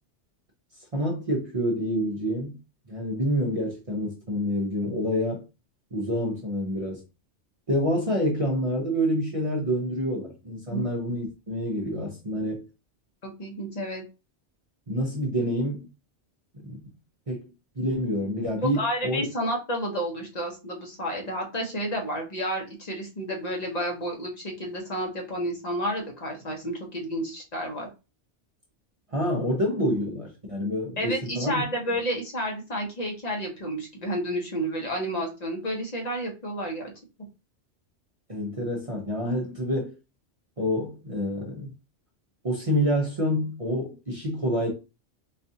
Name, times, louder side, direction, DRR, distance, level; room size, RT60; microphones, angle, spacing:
voice 1, 0.9-2.6 2.9-5.4 5.9-7.0 7.7-12.6 14.9-15.8 16.6-16.8 17.3-17.5 17.8-19.2 29.1-31.6 38.3-39.9 40.6-41.7 42.4-44.7, equal, 35° right, 0.8 m, -27 dB
voice 2, 13.2-14.0 18.8-27.9 31.0-36.9, equal, 35° left, 1.0 m, -31 dB
4.1 x 2.4 x 2.7 m
omnidirectional pair, 1.2 m